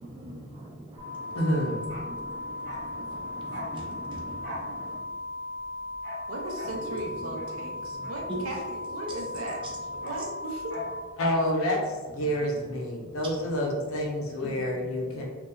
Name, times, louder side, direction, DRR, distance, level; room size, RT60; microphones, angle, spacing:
voice 1, 0.0-1.4 1.8-5.0 6.9-7.0 7.4-7.5 7.8-8.4 9.6-9.7 10.2-10.3 13.0-13.4 14.1-15.3, right 1 dB, 25° right, 0.4 m, -42 dB
sound 1, 1.0-11.0, left 2 dB, 5° left, 0.7 m, -37 dB
voice 2, 1.3-1.9 11.2-15.3, equal, 70° left, 0.5 m, -28 dB
Bark, 1.8-8.8 9.1-11.0 11.3-11.4, left 1 dB, 55° right, 0.9 m, -44 dB
voice 3, 6.3-9.6 9.9-10.8, right 2 dB, 80° right, 0.5 m, -37 dB
2.7 x 2.2 x 2.2 m
head